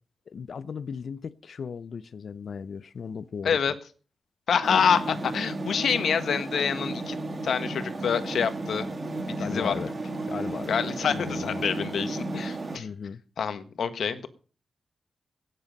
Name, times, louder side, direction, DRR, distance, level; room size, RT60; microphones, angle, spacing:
voice 1, 0.3-3.6 9.4-9.9 10.3-10.7 11.1-11.6 12.7-13.2, left 6 dB, 55° left, 0.6 m, -36 dB
voice 2, 3.4-3.7 4.5-7.1 7.4-8.9 9.3-9.7 10.7-12.9 13.4-14.3, left 7 dB, 75° left, 1.5 m, -26 dB
sound 1, 4.6-12.8, right 2 dB, 30° right, 1.8 m, -33 dB
16.5 x 10.0 x 5.3 m
wide cardioid pair, 160°, 0 cm